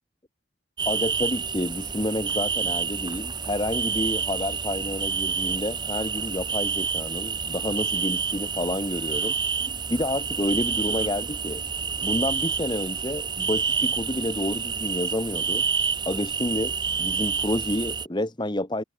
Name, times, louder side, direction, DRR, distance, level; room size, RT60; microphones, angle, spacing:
voice 1, 0.8-9.4 9.9-11.6 12.0-15.6 16.0-16.7 17.0-18.8, left 1 dB, 25° left, 1.7 m, -29 dB
sound 1, 0.8-18.1, right 6 dB, 25° right, 5.1 m, -28 dB
head